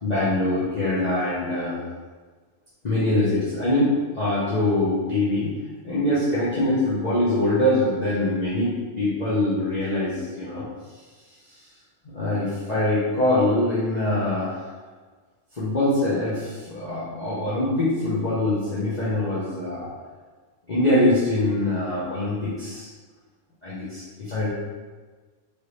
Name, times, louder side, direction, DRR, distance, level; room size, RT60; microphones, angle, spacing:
voice 1, 0.0-1.8 2.8-5.5 5.8-8.7 8.9-10.6 12.1-14.7 15.5-19.9 20.7-22.9 23.6-24.5, left 1 dB, 35° left, -10 dB, 1.0 m, -23 dB
4.5 x 3.3 x 3.2 m, 1.4 s
omnidirectional pair, 1.5 m